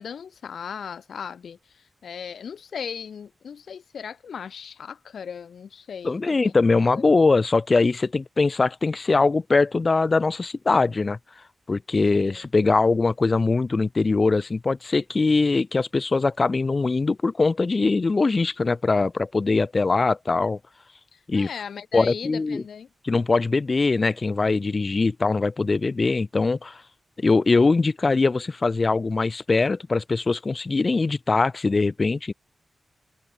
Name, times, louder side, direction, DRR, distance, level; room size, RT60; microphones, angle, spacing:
voice 1, 0.0-6.5 6.9-7.0 12.1-12.4 21.1-22.9, left 7 dB, 80° left, 4.3 m, -37 dB
voice 2, 6.0-11.2 11.7-20.6 21.3-21.5 21.9-22.6 23.0-26.8 27.2-32.3, left 3 dB, 35° left, 0.7 m, -22 dB
wide cardioid pair, 110°, 0 cm